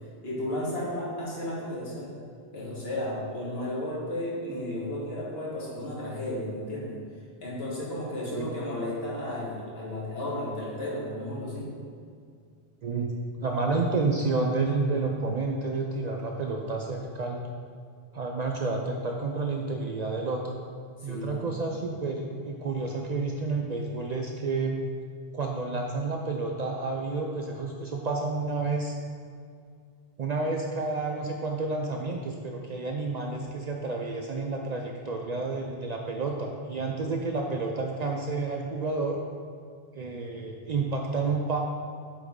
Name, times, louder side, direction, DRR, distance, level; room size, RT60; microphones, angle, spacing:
voice 1, 0.2-2.1 2.5-6.9 7.4-11.7 21.0-21.7, left 1 dB, 75° left, -6 dB, 1.8 m, -33 dB
voice 2, 12.8-13.1 13.4-17.5 18.1-20.5 21.0-24.8 25.3-28.9 30.2-39.2 39.9-41.6, right 3 dB, 55° right, 1 dB, 0.5 m, -30 dB
8.3 x 4.0 x 3.6 m, 2.2 s
omnidirectional pair, 1.1 m